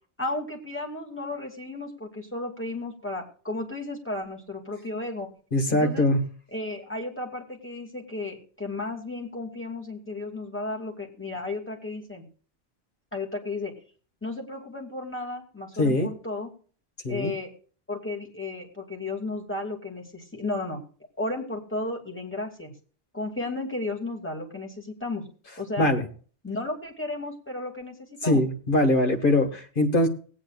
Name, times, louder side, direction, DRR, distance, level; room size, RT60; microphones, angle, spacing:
voice 1, 0.2-5.3 5.7-6.1 6.5-12.2 13.1-13.7 14.2-16.5 17.1-17.5 17.9-20.8 21.2-22.7 23.1-25.3 25.6-25.9 26.4-28.4, left 2 dB, 10° left, 0 dB, 2.4 m, -33 dB
voice 2, 5.5-6.2 15.8-16.1 17.0-17.3 25.8-26.1 28.2-30.1, left 1 dB, 50° left, 4 dB, 1.8 m, -22 dB
19.5 x 8.9 x 2.4 m, 0.41 s
omnidirectional pair, 1.1 m